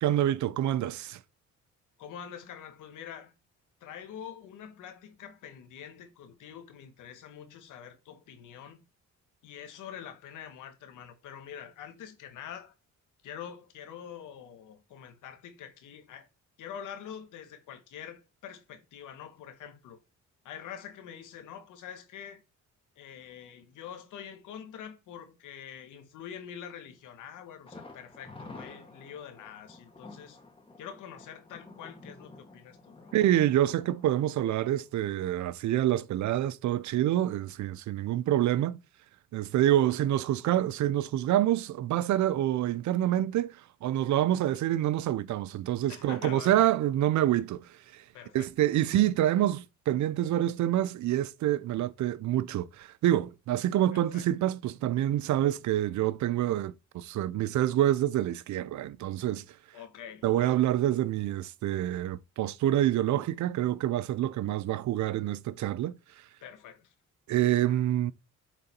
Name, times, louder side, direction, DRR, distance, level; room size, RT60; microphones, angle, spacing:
voice 1, 0.0-1.2 33.1-38.8 39.3-48.0 48.3-59.4 60.2-65.9 67.3-68.1, right 13 dB, 70° right, 0.6 m, -27 dB
voice 2, 2.0-3.3 3.8-8.8 9.4-12.7 13.2-16.3 16.6-20.0 20.4-22.4 22.9-30.4 30.8-33.1 45.9-46.6 48.1-48.5 53.9-54.2 59.7-60.6 66.4-66.9 67.7-67.8, left 8 dB, 85° left, 1.7 m, -45 dB
Thunder, 27.7-35.4 35.7-35.8 36.2-36.3, left 2 dB, 15° left, 1.9 m, -50 dB
7.7 x 3.8 x 4.4 m
cardioid pair, 90°, 30 cm